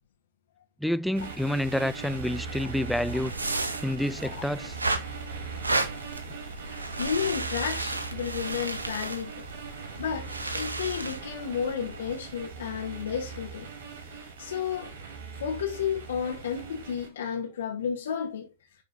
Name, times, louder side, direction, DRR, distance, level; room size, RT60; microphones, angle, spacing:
voice 1, 0.8-3.3 3.8-4.8, left 1 dB, ahead, 0.4 m, -28 dB
sound 1, 1.1-17.1, right 5 dB, 65° right, 4.5 m, -41 dB
sound 2, 2.7-12.1, right 2 dB, 85° right, 1.4 m, -34 dB
voice 2, 6.5-9.5 10.0-13.7 14.1-14.9 15.4-18.5, left 7 dB, 70° left, 2.2 m, -32 dB
10.5 x 5.0 x 4.1 m
figure-of-eight pair, 105°, 0 cm